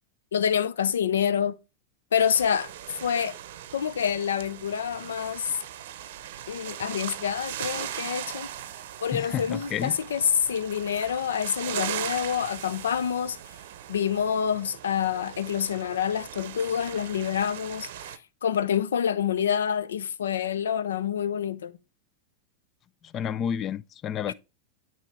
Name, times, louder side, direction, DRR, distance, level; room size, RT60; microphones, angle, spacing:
voice 1, 0.3-1.6 2.1-2.7 3.0-3.4 3.7-5.6 6.5-8.5 9.0-13.4 13.9-18.1 18.4-21.8 24.3-24.4, left 8 dB, 90° left, 0.5 m, -27 dB
sound 1, 2.2-18.2, right 11 dB, 70° right, 0.6 m, -39 dB
voice 2, 9.1-9.9 23.0-24.3, left 9 dB, 35° left, 0.3 m, -30 dB
9.0 x 3.0 x 4.6 m
hypercardioid pair, 115°, 0 cm